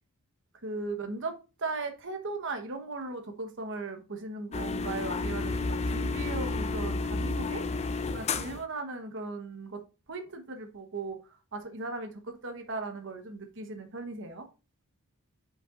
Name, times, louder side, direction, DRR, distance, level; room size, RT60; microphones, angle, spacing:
voice 1, 0.6-7.6 8.1-9.8 10.1-11.2 11.5-14.4, right 3 dB, 55° right, 1.2 m, -37 dB
sound 1, 4.5-8.6, left 3 dB, 30° left, 0.4 m, -31 dB
8.4 x 5.2 x 2.5 m
head